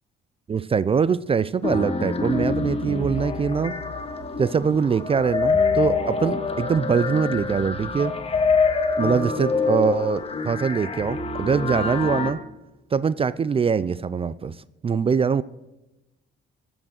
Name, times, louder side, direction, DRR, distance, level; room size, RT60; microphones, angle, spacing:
voice 1, 0.5-3.7 4.4-8.1 9.0-12.4 12.9-14.6 14.8-15.4, right 6 dB, 30° right, 17 dB, 0.4 m, -23 dB
sound 1, 1.6-12.3, left 4 dB, 30° left, 1.4 m, -25 dB
14.5 x 6.2 x 6.5 m, 0.99 s
cardioid pair, 90°, 20 cm